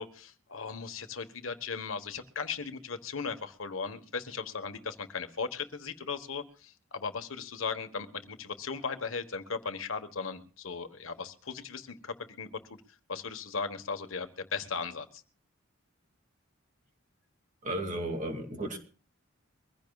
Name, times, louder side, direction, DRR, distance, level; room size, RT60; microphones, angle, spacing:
voice 1, 0.0-12.5 13.1-15.2, left 5 dB, 75° left, 9 dB, 1.3 m, -37 dB
voice 2, 17.6-18.8, right 1 dB, 40° right, 4 dB, 2.4 m, -34 dB
23.5 x 16.0 x 2.4 m, 0.38 s
head